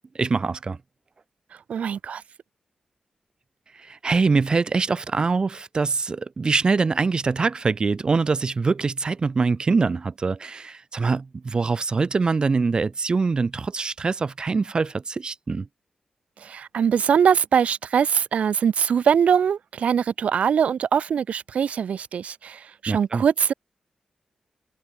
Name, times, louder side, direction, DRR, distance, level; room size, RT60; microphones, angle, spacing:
voice 1, 0.1-0.8 3.8-15.7 22.9-23.2, right 4 dB, 40° right, 0.7 m, -24 dB
voice 2, 1.7-2.2 16.4-23.5, right 7 dB, 85° right, 0.9 m, -22 dB
wide cardioid pair, 100°, 2 cm